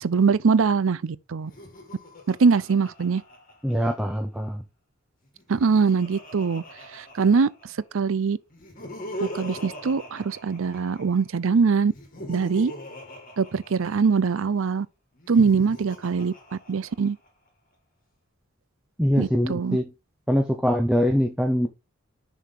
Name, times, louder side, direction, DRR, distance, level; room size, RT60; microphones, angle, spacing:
voice 1, 0.0-1.5 2.3-3.2 5.5-6.6 6.9-7.5 7.9-8.4 9.2-11.9 12.3-12.7 13.4-14.9 15.3-17.2 19.2-19.8, right 5 dB, 65° right, 0.5 m, -22 dB
Laughter, 1.4-4.2 5.2-7.8 8.5-11.2 11.9-14.3 15.1-17.3, left 1 dB, 40° left, 2.0 m, -41 dB
voice 2, 3.6-4.6 19.0-19.9 20.3-21.7, equal, 5° right, 0.6 m, -23 dB
6.7 x 4.7 x 3.8 m
head